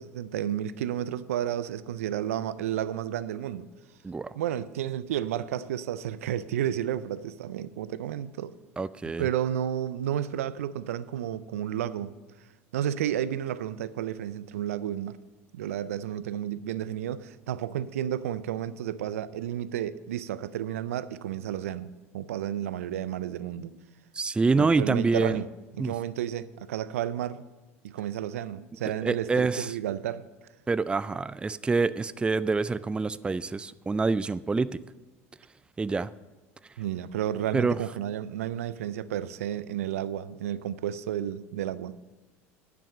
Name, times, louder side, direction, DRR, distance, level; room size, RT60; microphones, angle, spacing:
voice 1, 0.0-3.7 4.4-8.5 9.2-12.2 12.7-15.2 15.5-21.9 22.1-23.8 24.6-25.5 25.7-27.4 27.8-30.3 36.8-41.9, right 11 dB, 80° right, 0.4 m, -32 dB
voice 2, 4.0-4.4 8.8-9.3 24.1-25.4 25.8-25.9 29.0-29.8 30.7-34.8 35.8-36.1 37.5-37.8, right 4 dB, 15° right, 0.3 m, -26 dB
10.5 x 6.0 x 7.1 m
hypercardioid pair, 75°, 8 cm